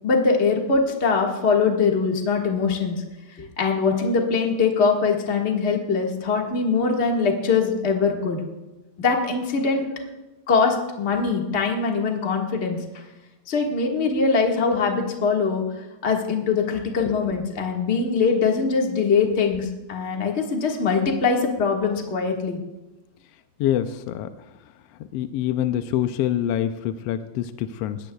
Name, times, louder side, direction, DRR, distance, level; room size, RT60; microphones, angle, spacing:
voice 1, 0.0-3.0 3.4-8.4 9.0-9.9 10.5-12.8 13.5-15.6 16.0-22.6, left 5 dB, 30° left, 0 dB, 1.4 m, -22 dB
voice 2, 23.6-24.3 25.1-28.0, left 11 dB, 75° left, 9 dB, 1.5 m, -25 dB
22.0 x 16.5 x 2.3 m, 1.0 s
omnidirectional pair, 3.3 m